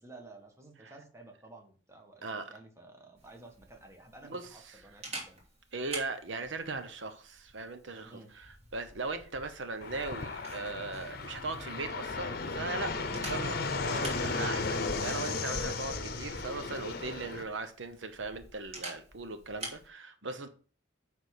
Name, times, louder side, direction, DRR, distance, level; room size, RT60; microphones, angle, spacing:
voice 1, 0.0-5.4 8.1-8.3 13.1-13.2, right 2 dB, 15° right, 1.5 m, -53 dB
voice 2, 2.2-2.5 4.3-4.8 5.7-13.6 13.8-20.5, right 3 dB, 75° right, 0.9 m, -39 dB
Camera, 3.2-19.9, right 1 dB, 35° right, 2.8 m, -48 dB
Fixed-wing aircraft airplane, 9.8-17.4, left 3 dB, 55° left, 0.8 m, -35 dB
9.3 x 3.6 x 6.5 m
head